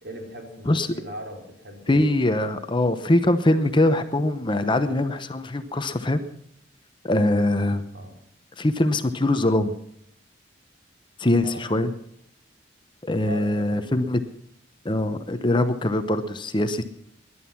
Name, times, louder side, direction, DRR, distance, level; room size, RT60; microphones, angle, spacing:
voice 1, 0.0-2.1 7.9-8.1 11.4-11.6 13.3-13.9, equal, 60° right, 2 dB, 4.3 m, -39 dB
voice 2, 1.9-6.2 7.0-7.8 8.6-9.7 11.2-11.9 13.0-14.2 14.8-16.8, left 1 dB, 25° left, 10 dB, 0.9 m, -22 dB
19.5 x 11.5 x 5.9 m, 0.74 s
head